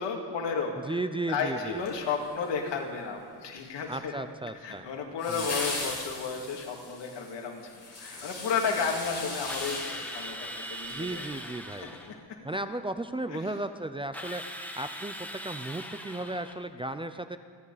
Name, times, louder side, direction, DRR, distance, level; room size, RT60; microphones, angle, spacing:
voice 1, 0.0-1.0 1.3-4.2 4.6-11.3 11.8-12.1 13.3-13.5, left 5 dB, 80° left, 1 dB, 2.5 m, -33 dB
voice 2, 0.9-1.8 3.9-4.9 5.3-5.5 10.9-12.0 12.4-17.4, right 2 dB, 15° right, 10 dB, 0.5 m, -35 dB
sound 1, 1.8-2.7 5.2-11.0 11.4-11.5, left 3 dB, 40° left, 5.4 m, -38 dB
Drill, 9.5-12.2 14.1-16.6, equal, 5° left, 1.4 m, -40 dB
29.0 x 11.0 x 4.1 m, 2.1 s
cardioid pair, 115°, 42 cm